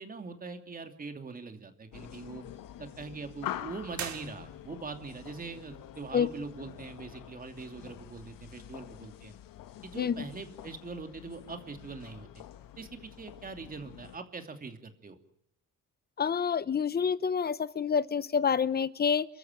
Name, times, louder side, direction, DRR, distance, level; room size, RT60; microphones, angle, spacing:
voice 1, 0.0-2.4 2.8-9.3 9.8-12.3 12.8-15.2, right 4 dB, 25° right, 2.8 m, -42 dB
sound 1, 1.9-14.2, left 12 dB, 85° left, 1.6 m, -46 dB
sound 2, 3.9-5.0, right 9 dB, 60° right, 2.7 m, -41 dB
voice 2, 16.2-19.3, left 6 dB, 30° left, 0.9 m, -28 dB
29.5 x 14.0 x 9.0 m
cardioid pair, 150°, 33 cm